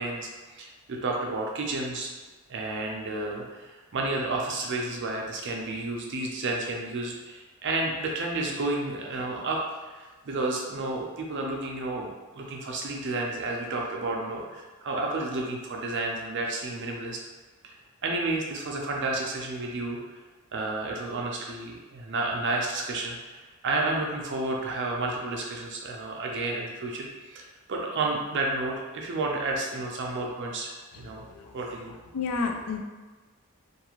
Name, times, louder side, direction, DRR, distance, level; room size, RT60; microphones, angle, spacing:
voice 1, 0.0-2.1 2.5-9.6 9.9-12.1 12.3-17.2 17.6-17.8 18.0-20.0 20.5-31.2 31.5-31.9, right 2 dB, 55° right, -1 dB, 0.5 m, -31 dB
voice 2, 30.9-31.6 32.1-32.8, left 4 dB, 75° left, 3 dB, 0.4 m, -31 dB
2.6 x 2.4 x 3.0 m, 1.3 s
head